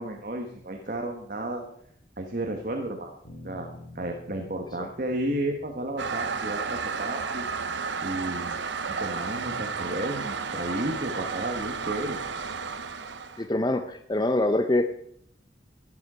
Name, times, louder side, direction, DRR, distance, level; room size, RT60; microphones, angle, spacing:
voice 1, 0.0-1.6 2.2-3.1 3.4-7.4 7.7-8.6 9.0-12.2, right 1 dB, 45° right, 3 dB, 1.3 m, -32 dB
sound 1, 3.2-7.6, left 2 dB, 50° left, 3.9 m, -49 dB
Toilet flush, 6.0-13.5, right 5 dB, 70° right, 0.9 m, -32 dB
voice 2, 13.4-14.9, left 1 dB, 20° left, 8 dB, 0.6 m, -25 dB
12.5 x 11.0 x 5.0 m, 0.68 s
head